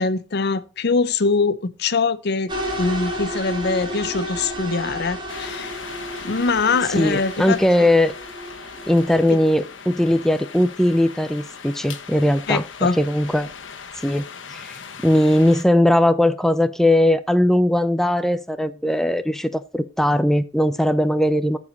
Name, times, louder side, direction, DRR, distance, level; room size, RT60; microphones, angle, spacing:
voice 1, 0.0-2.5 2.8-5.8 6.2-7.9 9.3-9.4 12.5-13.0, left 4 dB, 60° left, 0.7 m, -23 dB
sound 1, 2.5-9.2, equal, 25° right, 2.5 m, -31 dB
sound 2, 5.3-15.6, left 6 dB, 75° left, 1.2 m, -39 dB
voice 2, 6.9-8.1 8.9-13.5 14.0-14.2 14.5-21.6, left 1 dB, ahead, 0.4 m, -19 dB
13.5 x 4.9 x 4.0 m
head